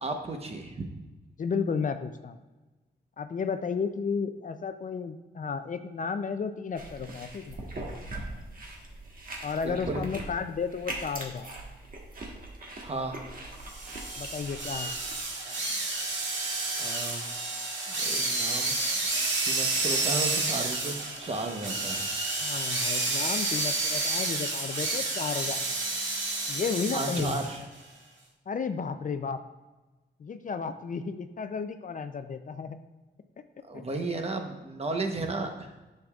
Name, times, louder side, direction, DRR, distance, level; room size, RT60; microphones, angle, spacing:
voice 1, 0.0-0.8 9.6-10.0 12.8-13.2 16.7-17.3 17.9-18.8 19.4-22.1 26.9-27.6 33.6-35.7, right 2 dB, 35° right, 4 dB, 0.9 m, -34 dB
voice 2, 1.4-2.4 3.2-7.6 9.4-11.5 14.2-14.9 22.4-25.8 26.5-27.4 28.5-29.4 30.2-32.8 33.7-33.8, left 5 dB, 45° left, 9 dB, 0.4 m, -33 dB
sound 1, 6.8-15.2, right 2 dB, 50° right, 1.4 m, -41 dB
sound 2, 13.6-27.6, right 2 dB, 85° right, 1.6 m, -30 dB
10.5 x 6.7 x 2.4 m, 1.1 s
wide cardioid pair, 115°, 19 cm